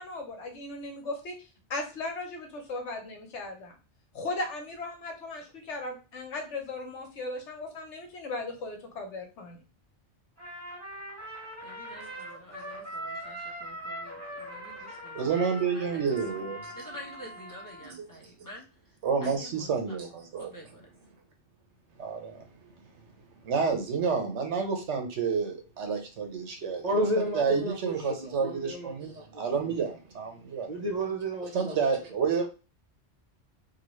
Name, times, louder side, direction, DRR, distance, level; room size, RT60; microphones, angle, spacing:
voice 1, 0.0-1.4 1.7-3.7 4.1-9.6, left 2 dB, 80° left, 3 dB, 1.1 m, -37 dB
Trumpet, 10.4-17.9, right 1 dB, 10° right, 1.8 m, -41 dB
voice 2, 11.6-16.0 16.8-18.7 19.2-20.0 20.4-20.9, equal, 20° left, -3 dB, 0.7 m, -48 dB
voice 3, 15.1-16.8 19.0-20.5 22.0-22.5 23.4-26.8 27.3-30.7 31.5-32.5, right 5 dB, 80° right, 4 dB, 1.0 m, -29 dB
voice 4, 26.8-29.2 29.6-29.7 30.7-31.8, equal, 50° right, 0 dB, 0.6 m, -32 dB
2.9 x 2.4 x 3.0 m, 0.33 s
omnidirectional pair, 1.2 m